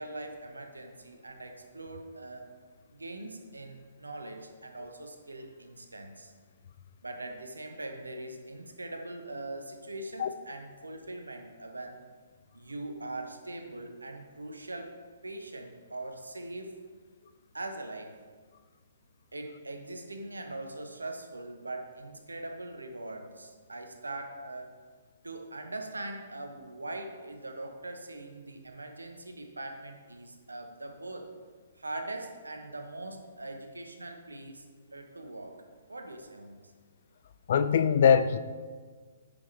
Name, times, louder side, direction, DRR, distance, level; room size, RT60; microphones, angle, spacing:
voice 1, 0.0-2.5 2.9-6.3 7.0-12.0 12.5-16.7 17.5-18.1 19.3-24.7 25.2-31.3 31.8-34.7 34.9-35.6 35.9-36.7, right 2 dB, 85° right, 5 dB, 1.0 m, -41 dB
voice 2, 37.5-38.4, left 7 dB, 55° left, 12 dB, 0.5 m, -22 dB
9.8 x 6.0 x 3.3 m, 1.5 s
figure-of-eight pair, 125°, 0 cm